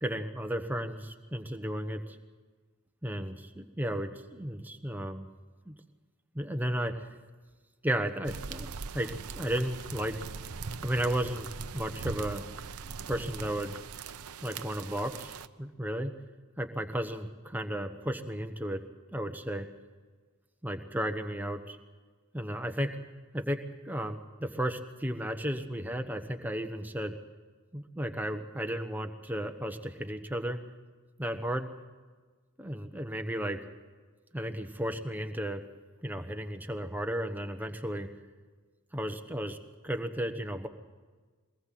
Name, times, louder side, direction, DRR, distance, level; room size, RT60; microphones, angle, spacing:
voice 1, 0.0-2.2 3.0-5.3 5.6-5.8 6.3-7.1 7.8-10.2 10.8-11.5 11.7-12.4 13.1-13.8 14.4-16.1 16.6-18.8 19.1-19.7 20.6-21.8 22.3-22.9 23.3-23.6 23.8-27.1 27.7-30.6 31.2-31.7 32.6-33.6 34.3-35.6 36.0-38.1 38.9-39.6 39.8-40.7, equal, 10° right, 5 dB, 1.1 m, -34 dB
sound 1, 8.2-15.5, right 5 dB, 85° right, 0.8 m, -41 dB
23.0 x 19.0 x 7.6 m, 1.4 s
head